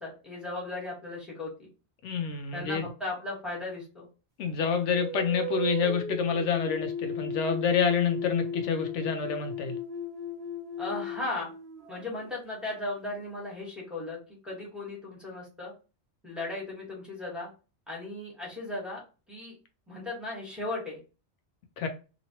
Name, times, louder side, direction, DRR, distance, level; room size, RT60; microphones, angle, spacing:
voice 1, 0.0-1.7 2.5-4.1 10.8-11.5 11.9-15.7 16.2-17.5 17.9-19.0 19.3-19.6 19.9-21.0, left 2 dB, ahead, 1.1 m, -36 dB
voice 2, 2.0-2.8 4.4-9.8 21.8-21.9, left 6 dB, 85° left, 0.9 m, -28 dB
sound 1, 4.9-12.3, left 2 dB, 35° right, 0.9 m, -35 dB
2.9 x 2.5 x 2.8 m
omnidirectional pair, 1.2 m